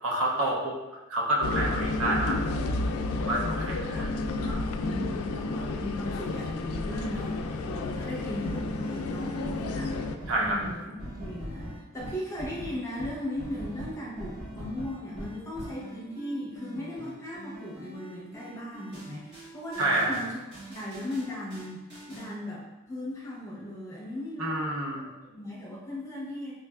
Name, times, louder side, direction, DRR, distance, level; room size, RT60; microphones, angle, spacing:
voice 1, 0.0-0.7 1.1-2.4 3.2-4.1 4.4-4.9 10.3-10.6 19.8-20.2 24.4-25.1, right 1 dB, 70° right, -2 dB, 0.6 m, -28 dB
sound 1, 1.4-10.2, left 2 dB, 75° left, 0.3 m, -31 dB
voice 2, 3.4-4.2 4.8-10.0 10.3-24.6 24.9-26.5, left 1 dB, 15° left, -6 dB, 0.7 m, -37 dB
sound 2, 7.0-22.3, equal, 50° right, 1.4 m, -43 dB
3.5 x 3.2 x 2.3 m, 1.1 s
head